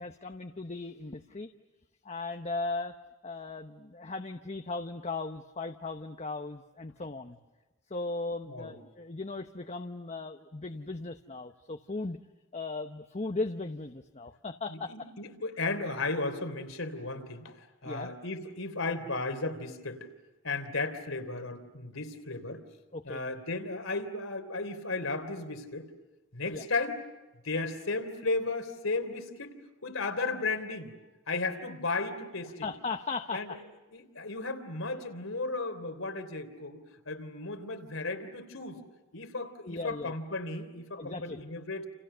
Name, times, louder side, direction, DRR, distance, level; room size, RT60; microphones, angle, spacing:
voice 1, 0.0-1.5 2.0-3.0 3.2-7.4 7.9-12.2 12.5-15.1 17.8-18.1 22.9-23.2 26.5-26.6 31.9-32.0 32.4-33.6 34.9-35.0 39.6-40.1 40.9-41.4, left 3 dB, 35° left, 6 dB, 0.9 m, -37 dB
voice 2, 14.7-17.5 17.8-20.1 20.4-22.6 23.0-25.9 26.3-26.9 27.4-29.5 29.8-30.9 31.3-32.7 33.3-33.5 33.9-36.8 37.1-38.8 39.1-41.9, left 3 dB, 80° left, 7 dB, 3.3 m, -34 dB
29.5 x 29.5 x 6.8 m, 1.1 s
head